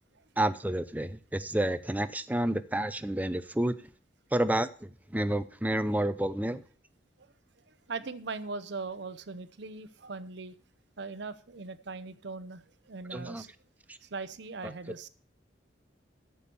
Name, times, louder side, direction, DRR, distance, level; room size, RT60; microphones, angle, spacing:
voice 1, 0.4-3.7 4.3-6.6 13.1-13.4, right 1 dB, 10° right, 0.5 m, -29 dB
voice 2, 7.7-10.6 11.0-13.5 14.0-15.1, right 4 dB, 60° right, 0.8 m, -40 dB
9.7 x 6.9 x 7.0 m
head